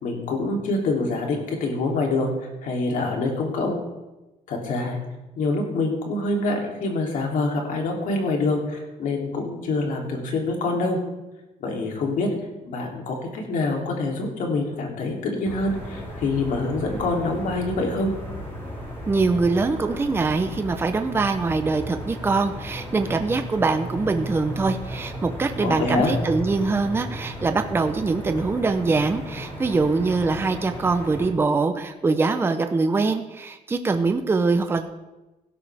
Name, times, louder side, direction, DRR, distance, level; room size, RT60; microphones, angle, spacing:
voice 1, 0.0-2.3 2.6-3.8 4.5-5.0 5.4-11.0 11.6-12.3 12.6-18.1 25.6-26.1, left 2 dB, 70° left, 0 dB, 3.0 m, -25 dB
sound 1, 15.4-31.3, equal, 20° left, 4.8 m, -35 dB
voice 2, 19.1-34.9, right 3 dB, 15° right, 7 dB, 0.6 m, -23 dB
16.0 x 12.5 x 3.5 m, 1.0 s
cardioid pair, 170°, 14 cm